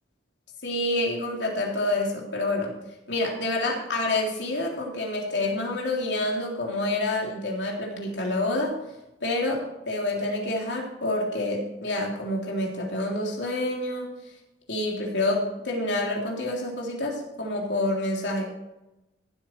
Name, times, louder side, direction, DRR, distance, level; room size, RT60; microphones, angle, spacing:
voice 1, 0.6-2.8 3.1-8.8 9.2-14.1 14.7-18.4, left 2 dB, 85° left, -1 dB, 3.3 m, -28 dB
15.5 x 8.2 x 4.5 m, 0.94 s
head